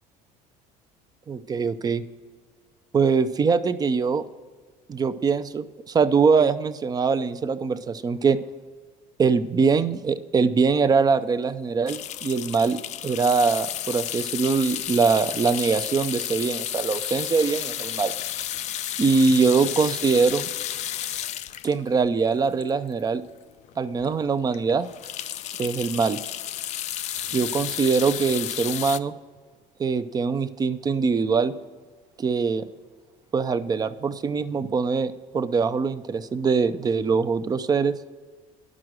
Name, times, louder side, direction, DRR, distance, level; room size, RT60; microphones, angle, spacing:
voice 1, 1.3-2.0 2.9-4.2 4.9-8.4 9.2-12.8 13.0-18.1 19.0-20.5 21.6-23.2 23.8-24.9 25.6-26.2 27.3-29.2 29.8-31.5 32.2-32.7 33.3-37.9, right 5 dB, 25° right, 12 dB, 0.5 m, -23 dB
sound 1, 11.9-23.2 23.7-23.8 24.0-24.2 24.5-29.0, left 11 dB, 45° left, 0.4 m, -32 dB
10.5 x 6.1 x 6.4 m, 1.4 s
cardioid pair, 125°, 16 cm